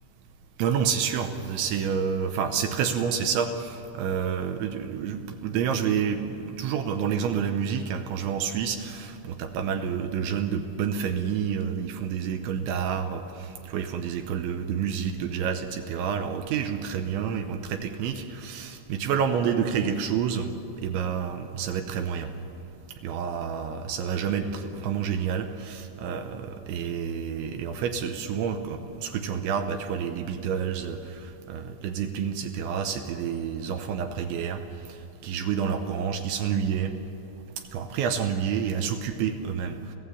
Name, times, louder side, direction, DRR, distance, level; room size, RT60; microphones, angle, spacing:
voice 1, 0.6-22.3 23.0-34.6 35.2-36.9 37.7-40.0, right 7 dB, 80° right, 6 dB, 3.1 m, -29 dB
30.0 x 15.0 x 8.5 m, 2.7 s
omnidirectional pair, 5.9 m